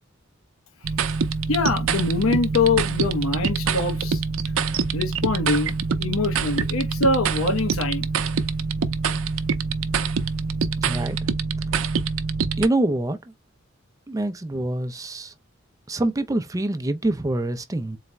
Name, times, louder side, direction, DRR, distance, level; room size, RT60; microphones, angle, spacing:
sound 1, 0.8-12.7, right 5 dB, 80° right, 0.5 m, -25 dB
voice 1, 1.5-4.2 4.9-8.1, left 3 dB, 90° left, 0.8 m, -24 dB
voice 2, 10.8-11.2 12.6-13.2 14.1-15.3 15.9-18.0, right 1 dB, 15° right, 0.4 m, -25 dB
4.0 x 2.1 x 3.3 m
head